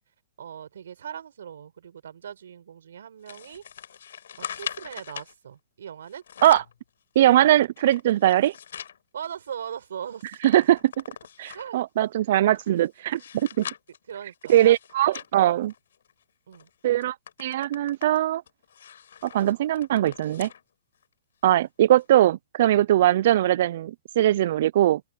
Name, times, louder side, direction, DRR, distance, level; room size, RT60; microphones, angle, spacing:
voice 1, 0.4-3.6 4.4-6.2 9.1-10.4 11.5-11.8 14.1-14.8 16.5-16.7, right 8 dB, 75° right, 5.2 m, -39 dB
sound 1, 3.3-5.3 6.1-6.8 7.3-9.0 9.4-9.5 9.8-11.8 12.4-16.1 16.5-16.7 17.0-20.6 21.0-21.1 22.0-22.1, left 8 dB, 75° left, 7.8 m, -41 dB
voice 2, 7.2-8.5 10.4-10.9 11.4-13.7 14.5-15.7 16.8-18.4 19.2-20.5 21.4-25.0, right 13 dB, 50° right, 0.5 m, -21 dB
open air
hypercardioid pair, 165°, 0 cm